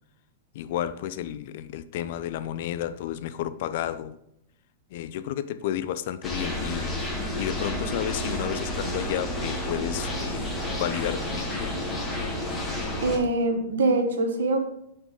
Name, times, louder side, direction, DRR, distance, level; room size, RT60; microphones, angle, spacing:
voice 1, 0.5-4.2 4.9-7.1 7.4-10.5 10.8-11.8, left 11 dB, 55° left, 0.3 m, -32 dB
sound 1, 6.2-13.2, left 1 dB, 10° left, 1.1 m, -30 dB
voice 2, 13.0-14.6, right 2 dB, 85° right, 1.0 m, -23 dB
7.9 x 3.9 x 3.6 m
hypercardioid pair, 145°, 0 cm